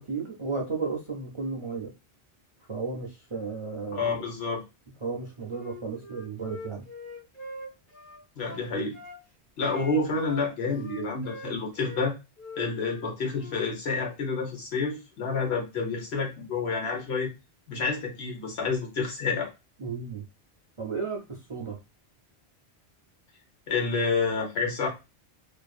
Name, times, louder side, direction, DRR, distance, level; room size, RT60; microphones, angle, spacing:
voice 1, 0.0-1.9 2.7-4.3 5.0-6.8 19.8-20.2 20.8-21.8, right 4 dB, 45° right, -2 dB, 0.4 m, -34 dB
voice 2, 3.9-4.6 8.4-9.0 9.6-12.1 12.6-17.3 17.7-19.5 23.7-24.9, left 4 dB, 75° left, 1 dB, 1.2 m, -29 dB
Wind instrument woodwind instrument, 5.5-9.2 9.7-12.1 12.4-13.7, left 2 dB, 15° left, 0.6 m, -43 dB
2.7 x 2.5 x 2.3 m, 0.25 s
omnidirectional pair, 1.1 m